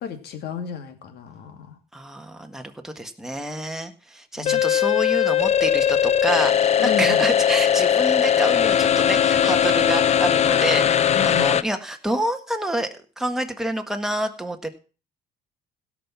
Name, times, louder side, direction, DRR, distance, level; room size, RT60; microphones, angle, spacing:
voice 1, 0.0-1.8 4.4-4.6 6.8-7.3 11.1-11.5, left 7 dB, 70° left, 7 dB, 2.4 m, -33 dB
voice 2, 1.9-12.9 13.2-14.7, right 1 dB, 5° right, 4 dB, 1.7 m, -28 dB
sound 1, 4.5-11.6, left 9 dB, 40° left, 0.6 m, -19 dB
16.5 x 5.9 x 6.0 m, 0.37 s
cardioid pair, 110°, 17 cm